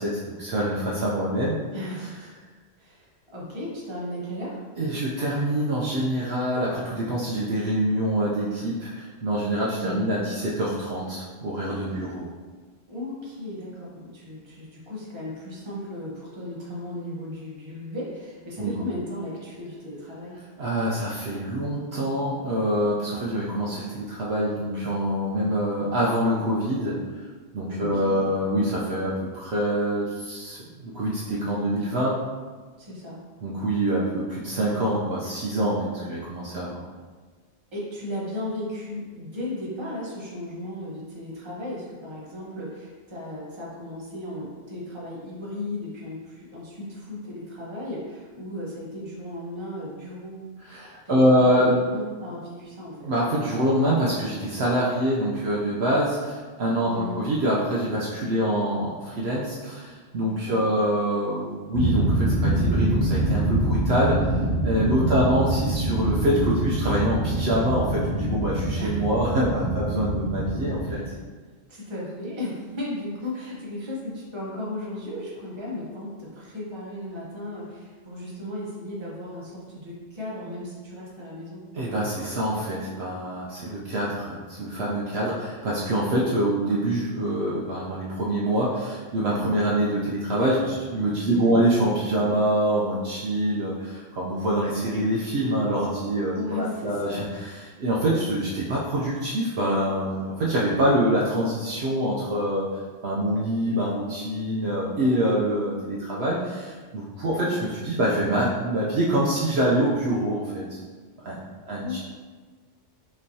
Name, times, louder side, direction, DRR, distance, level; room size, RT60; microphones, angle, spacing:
voice 1, 0.0-1.6 4.8-12.3 18.6-18.8 20.6-27.0 27.5-32.2 33.4-36.8 50.7-51.8 53.0-71.0 81.7-102.7 103.0-110.8 111.2-112.0, right 1 dB, 65° right, -5 dB, 0.8 m, -25 dB
voice 2, 1.7-2.3 2.8-4.6 9.7-10.1 11.9-12.1 12.9-20.4 27.7-28.4 32.8-33.2 37.7-50.4 51.1-53.1 56.9-57.3 60.4-60.7 65.0-65.2 68.8-69.0 70.8-71.1 71.7-81.6 91.3-91.6 96.3-97.2 107.3-107.6 111.8-112.0, left 1 dB, 25° right, -5 dB, 0.9 m, -35 dB
sound 1, 61.7-70.9, right 1 dB, 55° left, 1.0 m, -25 dB
5.2 x 3.1 x 2.7 m, 1.4 s
omnidirectional pair, 1.3 m